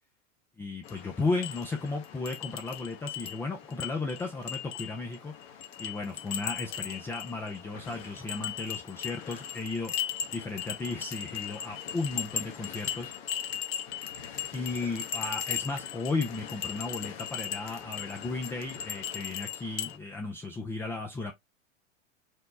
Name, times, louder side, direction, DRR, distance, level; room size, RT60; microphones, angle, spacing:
voice 1, 0.6-5.3 5.8-13.1 14.5-21.3, left 3 dB, 5° left, 0.3 m, -35 dB
sound 1, 0.8-20.0, left 9 dB, 55° left, 1.1 m, -38 dB
4.6 x 2.0 x 4.1 m
hypercardioid pair, 95°, 37 cm